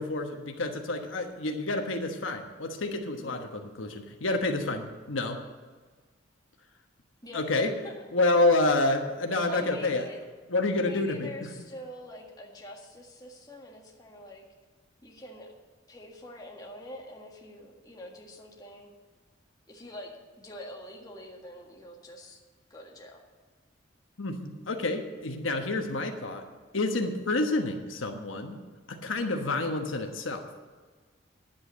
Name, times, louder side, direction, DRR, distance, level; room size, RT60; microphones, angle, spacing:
voice 1, 0.0-5.4 7.3-7.7 8.1-10.1 10.5-11.7 24.2-26.4 26.7-28.6 28.9-30.5, left 2 dB, 90° left, 4 dB, 1.3 m, -28 dB
voice 2, 3.2-3.6 7.2-7.4 7.8-7.9 9.5-10.2 10.8-14.4 15.0-15.5 15.9-18.9 19.7-22.4 22.7-23.2, left 1 dB, 20° left, -1 dB, 1.7 m, -45 dB
10.5 x 7.8 x 8.0 m, 1.4 s
head